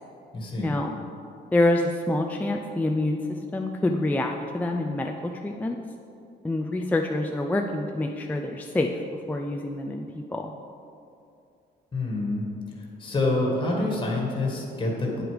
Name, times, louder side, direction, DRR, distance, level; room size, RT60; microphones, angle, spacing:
voice 1, 0.3-0.7 11.9-12.5 12.8-15.2, left 2 dB, 25° left, -2 dB, 1.6 m, -27 dB
voice 2, 1.5-5.8 6.4-9.0 9.3-10.5, left 2 dB, 10° left, 2 dB, 0.4 m, -26 dB
8.9 x 7.9 x 5.0 m, 2.5 s
wide cardioid pair, 155°, 18 cm